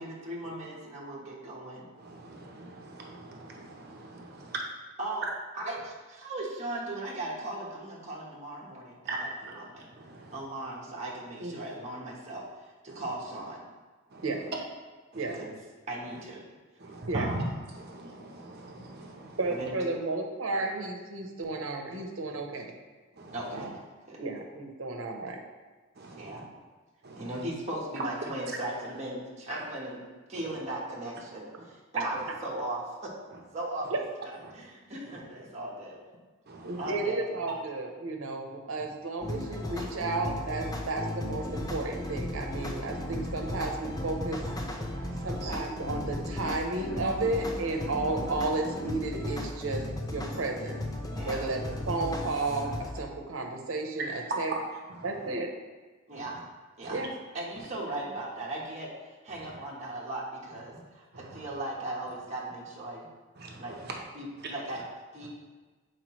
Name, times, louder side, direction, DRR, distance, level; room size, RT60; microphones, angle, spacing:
voice 1, 0.0-1.9 5.0-5.3 5.5-9.9 10.3-13.6 15.3-15.6 15.9-16.4 17.1-17.5 19.5-20.0 23.3-23.7 24.1-24.2 26.1-26.5 27.1-30.0 30.3-33.1 33.5-33.9 34.2-36.0 36.8-37.5 47.4-48.0 51.1-51.5 56.1-56.4 56.8-57.0 57.3-63.1 63.6-63.8 64.1-64.8 65.1-65.3, right 1 dB, 35° right, -5 dB, 1.2 m, -38 dB
voice 2, 2.0-4.6 9.0-9.5 9.9-10.4 12.9-13.0 14.1-14.5 15.1-15.4 16.8-17.4 17.7-19.4 23.2-23.7 26.0-26.4 27.0-27.4 28.5-28.6 30.4-30.6 33.3-33.4 34.4-34.5 35.1-35.2 36.5-36.9 44.9-45.5 47.0-47.1 50.3-50.4 54.0-54.6 54.9-55.3 56.1-56.4 56.8-57.1 59.3-59.6 61.1-61.4 63.4-63.9 64.4-64.5, right 3 dB, 50° right, 0 dB, 0.9 m, -41 dB
voice 3, 19.4-22.7 23.5-23.7 24.2-25.4 33.9-34.0 36.6-44.4 45.2-50.8 51.3-54.5 55.0-55.5 56.9-57.1, right 3 dB, 80° right, 3 dB, 0.9 m, -33 dB
sound 1, 39.2-53.0, left 1 dB, 20° left, 0.6 m, -35 dB
7.5 x 4.6 x 3.1 m, 1.3 s
head